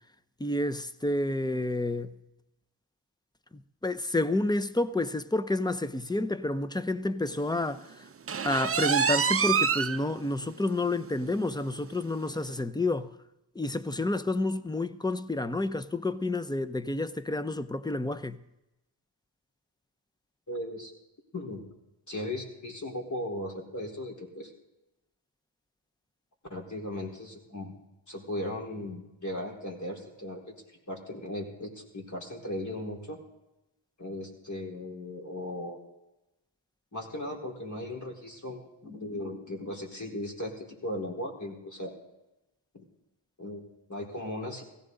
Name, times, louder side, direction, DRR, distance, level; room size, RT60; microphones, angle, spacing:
voice 1, 0.4-2.2 3.8-8.1 8.4-13.2 13.5-18.4, left 2 dB, 10° left, 0.8 m, -29 dB
sound 1, 8.3-10.0 10.4-10.5 11.0-11.1 11.4-11.5 12.5-12.6, right 6 dB, 30° right, 0.6 m, -26 dB
voice 2, 20.5-20.9 21.3-21.6 22.1-24.5 26.5-27.7 28.1-30.4 30.9-33.2 34.0-35.8 36.9-42.0 42.7-42.8 43.4-44.6, left 1 dB, 35° left, 4.4 m, -37 dB
17.5 x 15.0 x 4.0 m
cardioid pair, 50°, 50 cm